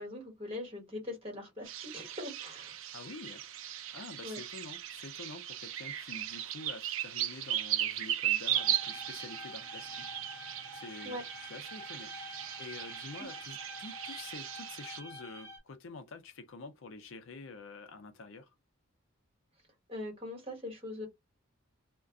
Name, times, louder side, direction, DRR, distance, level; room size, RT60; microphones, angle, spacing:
voice 1, 0.0-2.7 4.2-4.4 11.0-11.2 19.9-21.1, left 1 dB, 25° right, 1.3 m, -41 dB
sound 1, 1.7-15.0, right 12 dB, 65° right, 0.4 m, -37 dB
voice 2, 2.9-3.5 3.9-10.1 10.3-18.5, left 3 dB, 60° left, 0.5 m, -48 dB
sound 2, 8.6-15.6, equal, 20° left, 1.2 m, -47 dB
2.4 x 2.2 x 3.6 m
head